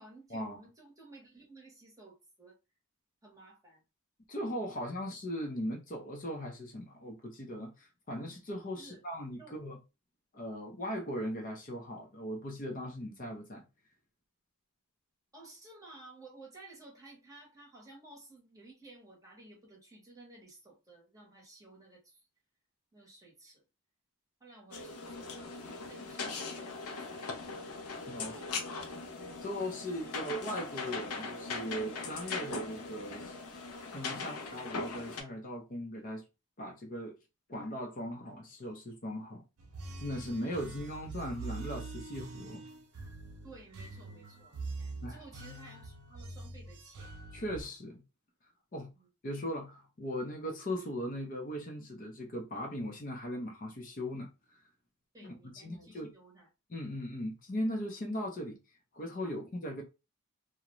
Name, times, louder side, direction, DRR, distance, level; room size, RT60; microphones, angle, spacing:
voice 1, 0.0-2.6 3.2-3.8 4.6-5.0 8.8-9.0 9.4-9.6 15.3-22.3 22.9-23.6 24.4-27.4 27.9-28.5 29.9-30.2 43.4-47.1 48.9-49.1 55.1-56.5 59.2-59.4, right 2 dB, 15° right, 0.9 m, -55 dB
voice 2, 4.3-9.8 10.3-13.6 27.9-28.3 29.4-33.4 33.9-36.2 36.6-37.2 37.5-39.4 40.0-42.6 45.0-45.2 47.3-48.0 48.7-48.9 49.2-54.3 55.2-56.1 56.7-58.6 58.9-59.8, equal, 35° left, 0.5 m, -38 dB
sound 1, 24.7-35.2, left 3 dB, 85° left, 0.6 m, -40 dB
sound 2, 39.6-47.6, right 3 dB, 80° right, 0.6 m, -44 dB
2.4 x 2.1 x 2.9 m
head